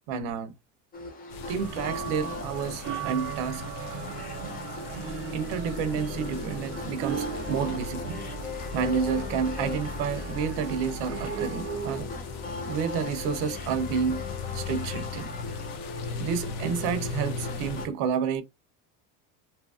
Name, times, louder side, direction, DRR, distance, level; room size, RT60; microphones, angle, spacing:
voice 1, 0.1-0.5 1.5-3.6 5.3-8.2 8.7-12.1 12.7-14.2 14.5-15.3 16.2-18.4, right 6 dB, 65° right, 0.8 m, -30 dB
sound 1, 0.9-17.9, left 4 dB, 20° left, 0.4 m, -39 dB
sound 2, 1.3-17.9, left 4 dB, 65° left, 0.9 m, -38 dB
sound 3, 1.6-12.0, right 9 dB, 35° right, 0.5 m, -38 dB
2.8 x 2.6 x 2.4 m
supercardioid pair, 125°, 46 cm